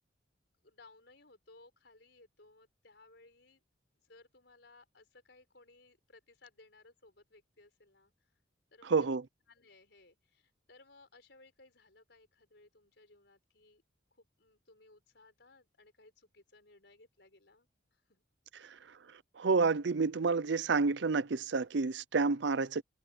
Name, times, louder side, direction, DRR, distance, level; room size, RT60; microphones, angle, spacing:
voice 1, 0.6-3.6 4.0-8.1 8.7-9.1 9.5-13.8 14.1-18.2 18.5-18.8, left 2 dB, 65° left, 5.1 m, -61 dB
voice 2, 8.8-9.2 18.6-18.8 19.4-22.8, right 4 dB, 70° right, 0.6 m, -29 dB
head